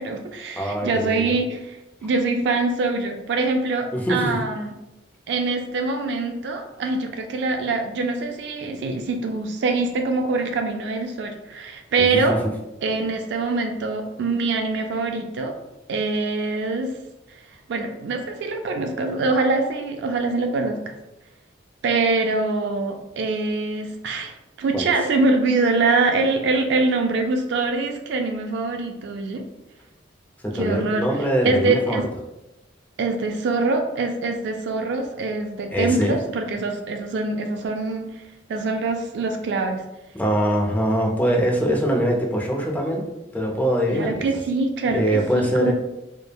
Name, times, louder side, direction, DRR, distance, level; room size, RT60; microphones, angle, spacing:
voice 1, 0.0-4.7 5.3-12.4 12.8-15.5 15.9-16.9 17.7-20.8 21.8-29.4 30.5-31.1 31.4-32.0 33.0-38.1 38.5-39.8 43.9-45.7, right 3 dB, 70° right, 4 dB, 0.3 m, -24 dB
voice 2, 0.6-1.4 3.9-4.4 12.1-12.5 24.7-24.9 30.4-32.1 35.7-36.2 40.1-43.0 43.3-44.2 44.9-45.7, equal, 10° left, 0 dB, 0.4 m, -23 dB
3.1 x 2.1 x 2.2 m, 0.95 s
head